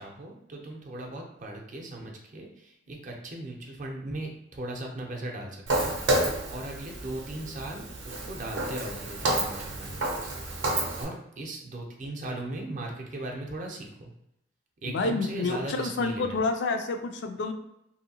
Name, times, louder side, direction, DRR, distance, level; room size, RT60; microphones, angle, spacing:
voice 1, 0.0-14.1 14.8-16.4, right 1 dB, 45° right, 1 dB, 0.5 m, -38 dB
Walk footsteps, 5.7-11.0, right 2 dB, 85° right, 0.6 m, -30 dB
voice 2, 14.9-17.5, left 3 dB, 70° left, 6 dB, 0.4 m, -28 dB
2.7 x 2.5 x 2.7 m, 0.81 s
head